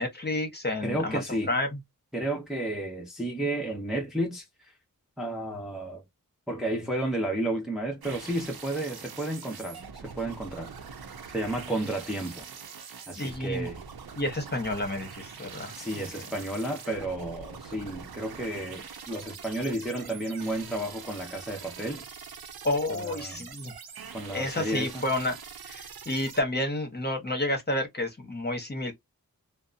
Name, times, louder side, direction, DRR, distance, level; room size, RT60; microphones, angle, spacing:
voice 1, 0.0-1.2 1.5-1.8 13.2-13.7 14.2-15.7 22.6-23.7 24.3-25.4 25.7-28.9, left 1 dB, 25° left, 0.9 m, -30 dB
voice 2, 0.8-1.5 2.1-4.7 5.2-6.0 6.5-10.7 11.3-12.5 13.1-13.8 15.7-22.0 22.9-23.4 24.1-25.0, right 1 dB, ahead, 0.6 m, -32 dB
sound 1, 8.0-26.4, right 6 dB, 80° right, 0.7 m, -44 dB
2.7 x 2.0 x 2.4 m
wide cardioid pair, 105°, 36 cm